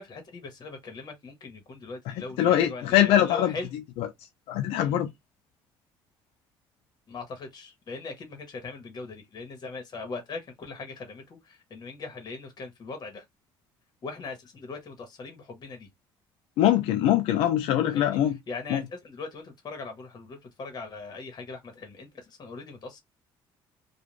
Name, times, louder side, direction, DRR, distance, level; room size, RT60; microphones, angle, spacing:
voice 1, 0.0-3.8 4.8-4.9 7.1-13.2 14.0-15.9 17.9-18.2 18.5-23.0, left 4 dB, 45° left, 1.1 m, -40 dB
voice 2, 2.4-3.5 4.0-4.1 4.5-5.1 16.6-18.4 18.7-18.8, left 12 dB, 85° left, 0.4 m, -22 dB
2.4 x 2.3 x 3.1 m
cardioid pair, 100°, 10 cm